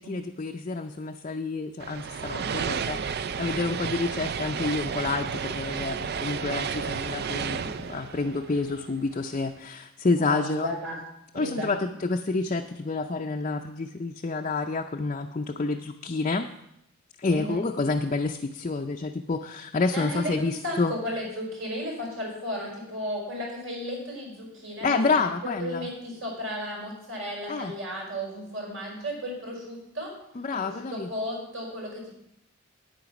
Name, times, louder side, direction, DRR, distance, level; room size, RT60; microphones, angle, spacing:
voice 1, 0.0-10.7 11.3-16.5 17.2-20.9 24.8-25.9 27.5-27.7 30.4-31.1, left 3 dB, 35° left, 3 dB, 0.5 m, -29 dB
sound 1, 1.8-9.2, right 6 dB, 50° right, 0.5 m, -32 dB
voice 2, 10.2-11.0 11.3-11.8 17.3-17.7 19.9-30.1 30.5-32.1, equal, 70° right, -1 dB, 5.4 m, -34 dB
9.2 x 9.1 x 5.9 m, 0.81 s
head